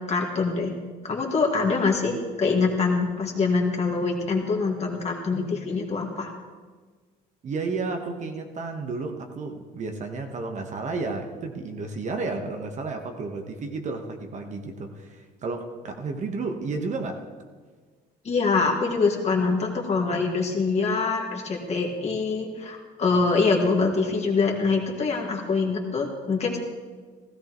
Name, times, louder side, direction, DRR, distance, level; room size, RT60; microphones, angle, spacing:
voice 1, 0.1-0.7 1.0-6.3 18.2-26.6, left 4 dB, 40° left, 2.0 m, -24 dB
voice 2, 7.4-17.2, right 3 dB, 45° right, 1.2 m, -32 dB
16.0 x 13.5 x 3.1 m
cardioid pair, 110°, 17 cm